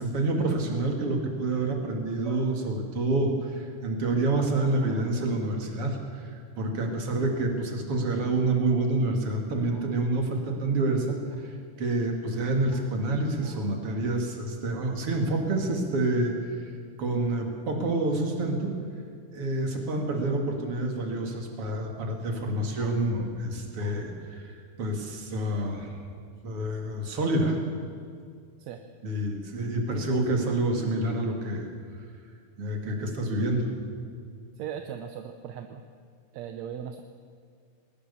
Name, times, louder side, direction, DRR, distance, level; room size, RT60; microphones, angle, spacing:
voice 1, 0.0-11.2 11.8-16.3 17.0-18.8 19.3-25.9 26.4-27.6 29.0-31.7 32.6-33.7, right 2 dB, 45° right, 3 dB, 3.2 m, -28 dB
voice 2, 34.6-35.8 36.3-37.0, right 9 dB, 70° right, 7 dB, 1.9 m, -38 dB
20.0 x 19.5 x 7.0 m, 2.2 s
omnidirectional pair, 3.7 m